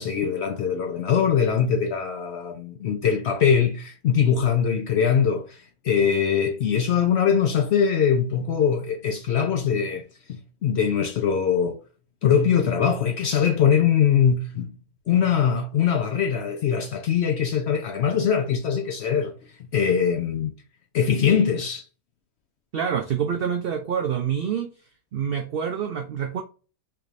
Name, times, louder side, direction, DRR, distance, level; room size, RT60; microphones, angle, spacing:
voice 1, 0.0-11.8 12.2-14.7 15.1-19.3 19.6-20.5 20.9-21.9, left 7 dB, 65° left, 0.7 m, -22 dB
voice 2, 22.7-24.7 25.1-26.4, right 8 dB, 85° right, 0.5 m, -26 dB
3.5 x 3.0 x 2.5 m
omnidirectional pair, 1.6 m